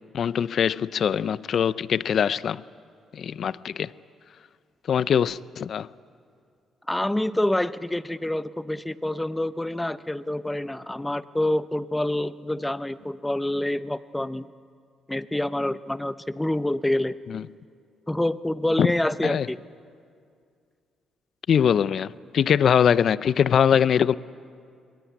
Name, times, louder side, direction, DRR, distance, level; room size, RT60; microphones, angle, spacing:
voice 1, 0.0-2.6 3.1-3.9 4.9-5.9 17.3-17.4 18.8-18.9 19.2-19.5 21.5-24.1, left 8 dB, 60° left, 0.5 m, -22 dB
voice 2, 6.9-14.5 15.1-17.2 18.1-19.6, left 1 dB, 10° left, 0.7 m, -27 dB
24.5 x 21.0 x 9.3 m
cardioid pair, 90°, 0 cm